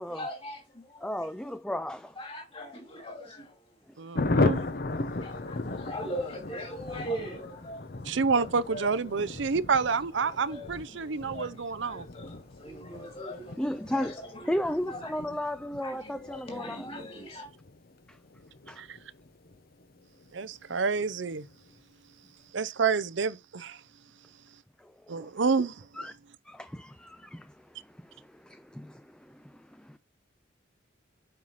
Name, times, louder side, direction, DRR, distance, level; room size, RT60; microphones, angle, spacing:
voice 1, 0.0-1.1 2.2-4.5 4.9-8.9 9.8-10.0 10.3-15.1 15.8-17.5, equal, 30° left, 2.8 m, -41 dB
voice 2, 1.0-2.2 3.9-4.0 13.6-16.9 18.1-18.2 18.7-18.8 24.8-25.3 26.0-26.1 26.5-30.0, left 1 dB, 5° left, 0.4 m, -35 dB
voice 3, 4.0-4.6 8.1-12.1 18.8-19.0 20.3-21.5 22.5-23.8 25.1-25.7, right 5 dB, 70° right, 0.6 m, -28 dB
Thunder, 4.1-20.3 20.6-20.7 20.9-21.1 21.3-21.7, left 2 dB, 50° left, 0.8 m, -36 dB
7.6 x 5.6 x 5.7 m
head